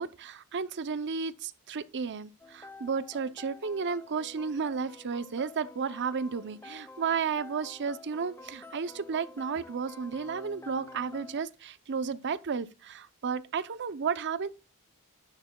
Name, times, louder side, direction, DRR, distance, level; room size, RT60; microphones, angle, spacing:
voice 1, 0.0-14.5, right 5 dB, 55° right, 0.6 m, -33 dB
sound 1, 2.4-11.4, left 3 dB, 10° left, 0.6 m, -49 dB
10.5 x 10.5 x 2.3 m
head